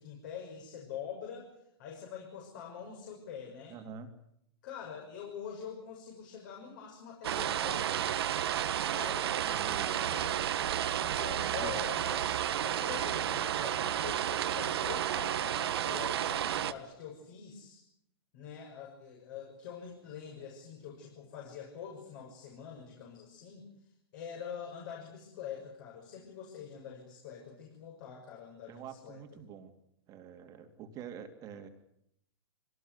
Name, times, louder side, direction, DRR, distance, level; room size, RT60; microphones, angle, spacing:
voice 1, 0.0-1.5 1.8-3.8 4.6-8.1 8.9-10.5 11.0-17.8 18.3-29.2, left 7 dB, 50° left, 1 dB, 6.5 m, -45 dB
voice 2, 3.7-4.1 9.4-10.0 11.4-11.8 28.7-29.7 30.1-31.7, right 7 dB, 25° right, 6 dB, 2.6 m, -46 dB
sound 1, 7.2-16.7, right 10 dB, 65° right, 1.6 m, -32 dB
24.5 x 18.5 x 9.6 m, 0.75 s
hypercardioid pair, 150°, 14 cm